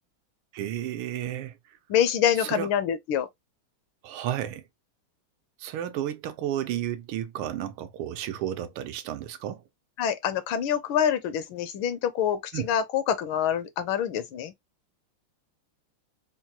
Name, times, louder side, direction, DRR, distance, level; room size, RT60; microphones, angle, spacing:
voice 1, 0.5-1.6 2.4-2.7 4.0-4.7 5.6-9.6 12.5-12.7, right 11 dB, 85° right, 1.5 m, -32 dB
voice 2, 1.9-3.3 10.0-14.5, left 9 dB, 75° left, 1.3 m, -26 dB
4.5 x 2.2 x 2.8 m
omnidirectional pair, 2.4 m